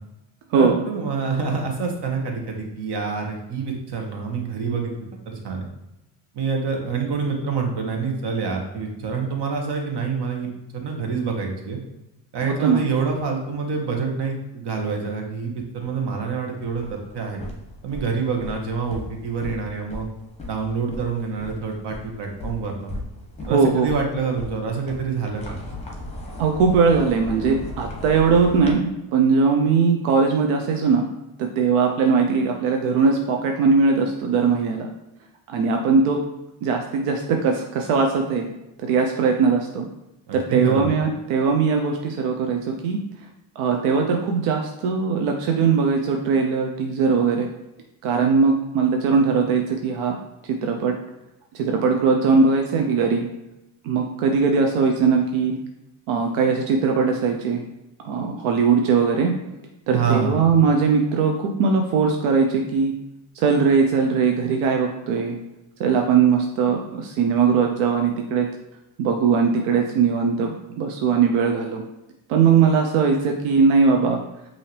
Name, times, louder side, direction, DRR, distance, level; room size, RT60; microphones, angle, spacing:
voice 1, 0.5-4.9 5.3-5.7 6.3-11.8 12.3-17.4 17.8-20.1 20.4-22.9 23.5-25.5 40.3-40.8 59.9-60.4, right 5 dB, 55° right, 2 dB, 1.2 m, -27 dB
voice 2, 12.5-12.8 23.5-23.9 26.4-31.1 31.4-34.8 35.5-36.2 36.6-38.5 38.8-39.9 40.3-43.0 43.6-47.5 48.0-50.1 50.6-50.9 51.5-53.3 53.8-55.6 56.1-57.6 58.0-59.3 59.9-62.9 63.4-65.4 65.8-68.5 69.0-71.8 72.3-74.2, right 5 dB, 85° right, 2 dB, 0.7 m, -20 dB
sound 1, 16.6-28.7, left 1 dB, 15° left, 1.1 m, -37 dB
5.6 x 2.8 x 3.1 m, 0.93 s
cardioid pair, 90°, 50 cm